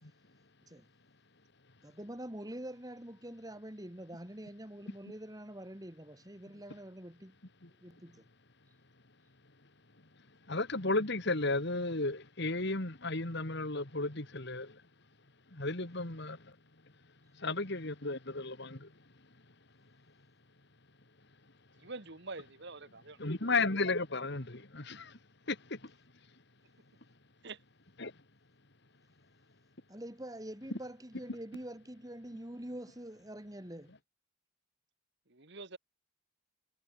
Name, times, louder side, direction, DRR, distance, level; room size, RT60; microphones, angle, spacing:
voice 1, 1.8-7.4 7.8-8.3 29.9-33.9, right 1 dB, 15° right, 2.2 m, -45 dB
voice 2, 10.5-14.8 15.5-16.6 17.4-18.9 23.2-25.2 25.5-25.9 28.0-28.1, left 3 dB, 55° left, 2.4 m, -34 dB
voice 3, 21.8-23.2 27.4-27.6 35.3-35.8, right 3 dB, 55° right, 2.0 m, -45 dB
head